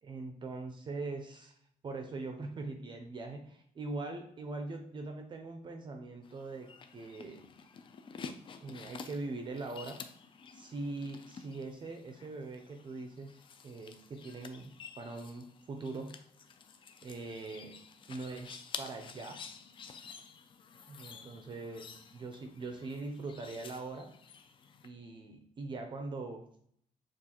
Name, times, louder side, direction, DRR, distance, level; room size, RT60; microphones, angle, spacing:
voice 1, 0.0-1.5 1.8-7.4 8.6-10.0 10.6-14.7 15.0-16.2 17.0-17.8 18.1-19.4 20.9-24.1 24.8-26.5, right 3 dB, 35° right, 4 dB, 0.5 m, -42 dB
sound 1, 6.2-24.9, left 6 dB, 35° left, 0.4 m, -50 dB
6.9 x 2.4 x 2.9 m, 0.65 s
cardioid pair, 160°, 14 cm